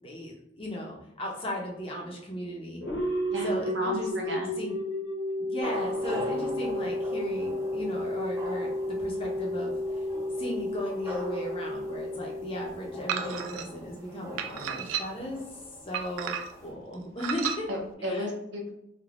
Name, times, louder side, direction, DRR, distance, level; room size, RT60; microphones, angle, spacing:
voice 1, 0.0-2.8 3.4-4.7 5.4-10.0 10.4-15.4 15.9-17.7 18.0-18.3, equal, 30° left, -1 dB, 0.5 m, -36 dB
sound 1, 2.8-13.5, left 1 dB, 65° left, 0.8 m, -32 dB
voice 2, 3.3-4.5 17.7-18.7, equal, 65° right, 0 dB, 0.7 m, -34 dB
sound 2, 5.6-16.7, left 1 dB, 15° right, 0.6 m, -42 dB
sound 3, 13.1-13.7 14.4-15.3 15.9-16.7 17.2-17.6, right 8 dB, 90° right, 0.3 m, -33 dB
3.2 x 2.2 x 2.4 m, 0.81 s
head